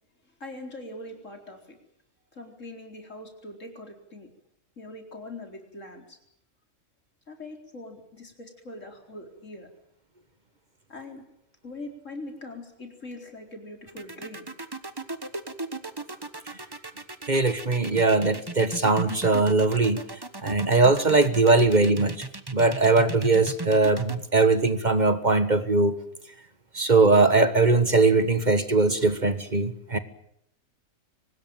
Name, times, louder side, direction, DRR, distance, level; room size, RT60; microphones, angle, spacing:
voice 1, 0.4-1.8 2.3-4.3 4.8-6.2 7.3-9.7 10.9-11.2 11.6-14.5, left 2 dB, 75° left, 3 dB, 4.6 m, -42 dB
sound 1, 13.9-24.2, right 2 dB, 20° right, 1.3 m, -36 dB
voice 2, 17.3-20.0 20.4-22.1 22.5-25.9 26.7-30.0, right 3 dB, 35° right, 11 dB, 1.5 m, -21 dB
24.0 x 19.5 x 9.1 m, 0.74 s
omnidirectional pair, 1.3 m